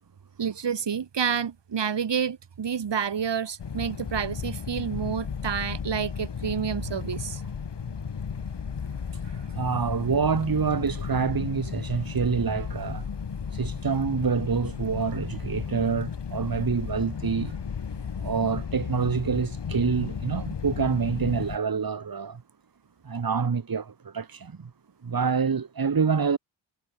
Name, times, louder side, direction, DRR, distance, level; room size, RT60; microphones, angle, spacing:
voice 1, 0.4-7.4 9.2-9.4, right 7 dB, 65° right, 4.4 m, -29 dB
sound 1, 3.6-21.6, left 6 dB, 60° left, 6.1 m, -34 dB
voice 2, 9.5-13.1 13.5-17.5 18.2-22.4 23.0-24.7 25.0-26.4, right 5 dB, 50° right, 4.2 m, -27 dB
wide cardioid pair, 100°, 46 cm